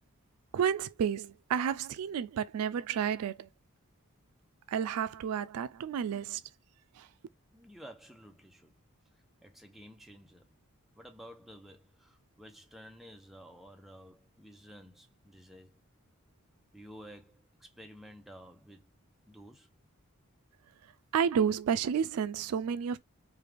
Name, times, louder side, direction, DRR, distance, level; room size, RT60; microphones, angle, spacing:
voice 1, 0.5-3.5 4.7-6.4 7.0-7.1 21.1-23.0, right 7 dB, 80° right, 0.3 m, -31 dB
voice 2, 7.5-8.7 9.4-10.6 11.0-15.8 16.7-18.9 19.3-19.7, equal, ahead, 0.5 m, -52 dB
3.2 x 2.3 x 3.3 m
head